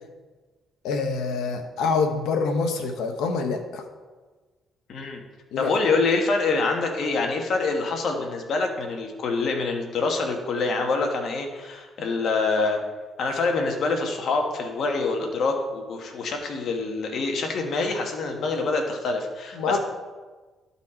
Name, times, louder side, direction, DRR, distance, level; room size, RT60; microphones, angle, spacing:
voice 1, 0.8-3.8 5.5-5.7 19.5-19.8, left 4 dB, 90° left, 5 dB, 0.9 m, -26 dB
voice 2, 4.9-5.2 5.6-12.8 13.2-19.8, left 3 dB, 65° left, 3 dB, 1.3 m, -26 dB
11.5 x 4.2 x 4.3 m, 1.3 s
cardioid pair, 90°, 0 cm